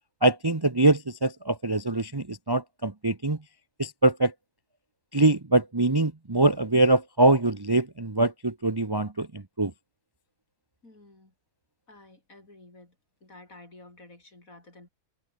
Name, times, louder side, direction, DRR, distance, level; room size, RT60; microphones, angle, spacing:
voice 1, 0.2-3.4 3.8-4.3 5.1-9.7, right 2 dB, 20° right, 0.9 m, -23 dB
voice 2, 10.8-11.3 11.9-13.0 13.2-14.9, left 2 dB, 55° left, 6.3 m, -51 dB
omnidirectional pair, 1.7 m